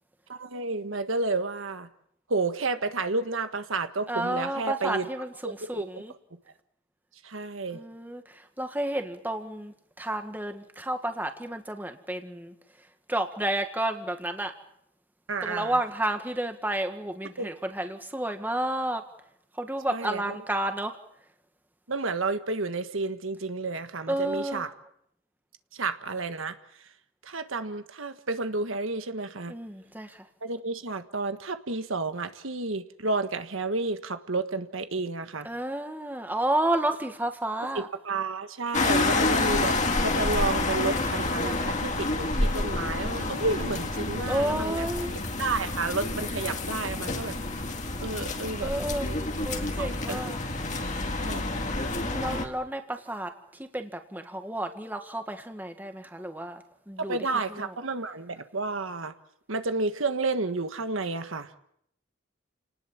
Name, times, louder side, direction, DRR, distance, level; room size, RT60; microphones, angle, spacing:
voice 1, 0.3-1.9 2.3-5.0 5.7-5.8 7.2-7.8 15.3-15.8 17.4-17.5 19.9-20.4 21.9-24.7 25.7-26.6 27.2-29.5 30.4-35.5 37.7-44.9 45.4-47.4 48.0-48.7 49.8-50.2 51.2-51.7 57.0-59.1 59.5-61.5, right 3 dB, 75° right, 9 dB, 1.5 m, -31 dB
voice 2, 4.1-6.1 7.7-12.5 13.1-14.5 15.4-19.0 19.5-21.0 24.1-24.6 29.5-30.3 35.4-37.9 44.3-45.2 48.6-49.1 49.4-50.4 51.9-57.8, right 1 dB, 10° right, 6 dB, 1.7 m, -31 dB
sound 1, 38.7-52.5, left 2 dB, 35° left, 2.2 m, -28 dB
29.5 x 19.0 x 7.4 m, 0.72 s
head